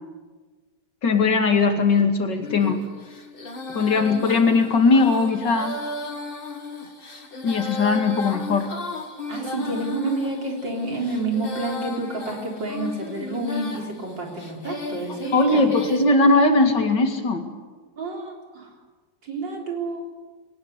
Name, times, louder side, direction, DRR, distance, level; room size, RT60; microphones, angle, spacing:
voice 1, 1.0-2.8 3.7-5.8 7.4-8.7 15.3-17.5, left 3 dB, 75° left, 5 dB, 2.9 m, -19 dB
Female singing, 2.4-16.0, left 3 dB, 30° left, 2.2 m, -35 dB
voice 2, 9.3-15.7 18.0-18.7 19.2-20.0, right 2 dB, 90° right, 1 dB, 4.6 m, -29 dB
21.5 x 19.0 x 8.3 m, 1.4 s
omnidirectional pair, 1.9 m